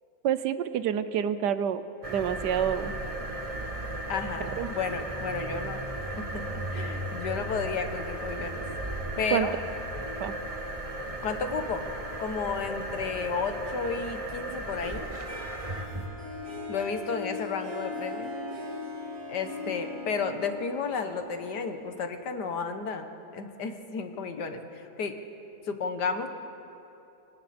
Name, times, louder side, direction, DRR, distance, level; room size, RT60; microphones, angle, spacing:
voice 1, 0.2-2.9 4.4-4.7 9.3-9.5 10.2-10.3, right 9 dB, 80° right, 13 dB, 1.4 m, -28 dB
sound 1, 2.0-16.1, right 1 dB, 25° right, 1.1 m, -35 dB
voice 2, 4.1-5.8 6.1-8.7 9.2-9.5 11.2-11.8 12.2-15.1 16.7-18.3 19.3-23.1 23.3-25.1 25.7-26.3, left 5 dB, 75° left, 7 dB, 1.8 m, -32 dB
Harp, 15.3-22.2, left 2 dB, 55° right, 3.5 m, -39 dB
25.0 x 24.0 x 4.3 m, 2.9 s
omnidirectional pair, 1.8 m